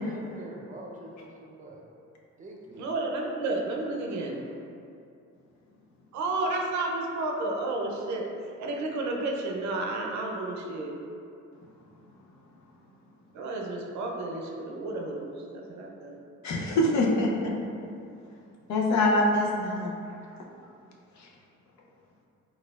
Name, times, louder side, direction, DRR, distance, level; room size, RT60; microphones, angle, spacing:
voice 1, 0.0-1.8 2.4-2.9, right 1 dB, 25° right, -2 dB, 0.5 m, -44 dB
voice 2, 2.8-4.5 6.1-8.3 8.6-11.0 13.3-16.2, right 2 dB, 70° right, 0 dB, 0.5 m, -31 dB
voice 3, 16.4-17.5 18.7-20.0 21.2-21.3, left 1 dB, 65° left, -1 dB, 0.6 m, -24 dB
4.1 x 2.4 x 2.3 m, 2.5 s
cardioid pair, 90°, 30 cm